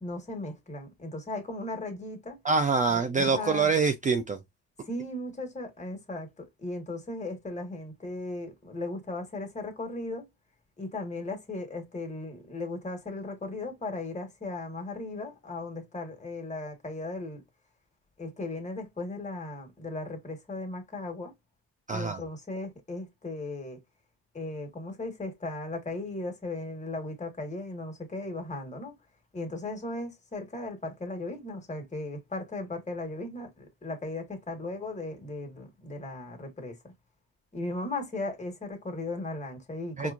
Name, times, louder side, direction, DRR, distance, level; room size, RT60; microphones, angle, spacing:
voice 1, 0.0-2.4 2.9-3.7 4.9-10.2 10.8-17.4 18.2-21.3 21.9-23.8 24.3-28.9 29.3-36.9 37.5-40.1, left 2 dB, 25° left, 1.4 m, -37 dB
voice 2, 2.4-4.4 21.9-22.2 40.0-40.1, right 4 dB, 25° right, 0.4 m, -25 dB
4.4 x 2.5 x 2.4 m
cardioid pair, 90°, 30 cm